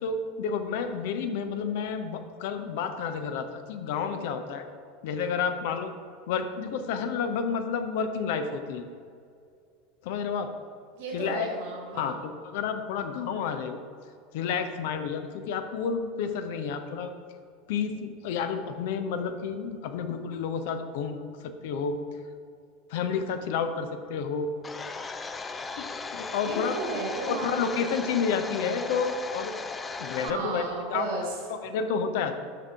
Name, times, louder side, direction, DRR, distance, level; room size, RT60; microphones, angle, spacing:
voice 1, 0.0-4.6 5.0-5.9 6.3-8.8 10.0-10.5 11.1-11.5 11.9-13.8 14.3-17.1 17.7-22.0 22.9-24.5 25.8-26.8 27.3-29.6 30.0-30.6 30.9-31.1 31.5-32.4, left 6 dB, 60° left, 8 dB, 0.7 m, -30 dB
voice 2, 10.9-12.2 26.4-27.9 30.1-31.4, right 3 dB, 55° right, -3 dB, 1.8 m, -34 dB
Domestic sounds home sounds, 24.6-30.3, left 4 dB, 20° left, 0.5 m, -37 dB
10.0 x 6.6 x 3.7 m, 2.3 s
figure-of-eight pair, 80°, 0 cm